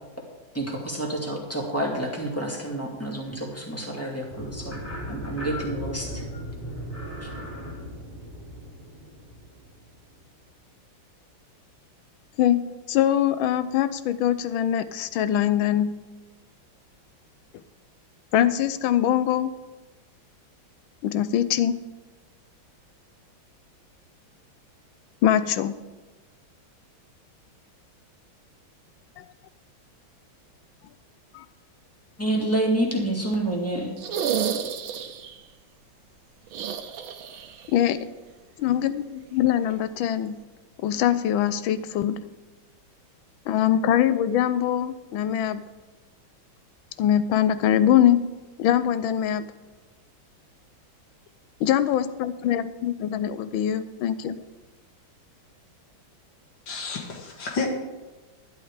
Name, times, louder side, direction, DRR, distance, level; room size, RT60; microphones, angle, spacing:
voice 1, 0.5-4.8 5.1-6.2 7.2-7.3 32.2-33.9, right 1 dB, 5° left, -2 dB, 2.4 m, -28 dB
sound 1, 4.3-10.3, equal, 25° left, 5.1 m, -37 dB
voice 2, 12.4-16.0 18.3-19.5 21.0-21.8 25.2-25.8 29.2-29.3 31.3-31.4 37.7-38.0 38.6-40.4 40.8-42.2 43.5-45.7 47.0-48.2 48.6-49.4 51.6-54.4, left 10 dB, 85° left, 13 dB, 1.4 m, -23 dB
sound 2, 34.0-35.4 36.5-37.7 37.9-38.0 39.7-39.8, right 8 dB, 80° right, 1.7 m, -30 dB
voice 3, 56.7-57.7, left 4 dB, 65° left, 1 dB, 2.6 m, -30 dB
11.5 x 11.0 x 4.9 m, 1.2 s
omnidirectional pair, 2.2 m